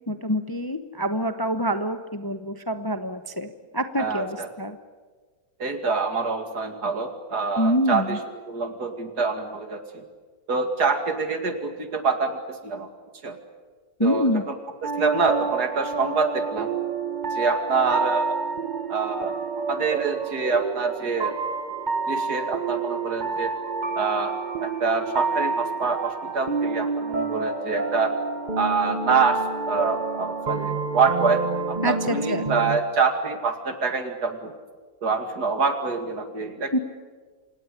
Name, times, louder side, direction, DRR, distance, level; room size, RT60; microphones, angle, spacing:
voice 1, 0.1-4.8 7.6-8.2 14.0-14.4 31.8-32.4 36.7-36.8, equal, 20° left, 9 dB, 0.8 m, -26 dB
voice 2, 4.0-4.5 5.6-8.2 8.5-10.0 10.5-12.9 13.2-13.4 14.0-14.3 14.8-16.7 17.4-18.4 18.9-19.3 19.7-21.3 22.1-23.5 24.0-24.3 24.6-28.1 28.6-29.4 29.7-31.4 31.7-34.5 35.0-36.8, right 4 dB, 75° right, 7 dB, 2.9 m, -25 dB
sound 1, 14.8-32.8, right 4 dB, 30° right, 1.2 m, -29 dB
27.0 x 18.5 x 10.0 m, 1.4 s
omnidirectional pair, 1.7 m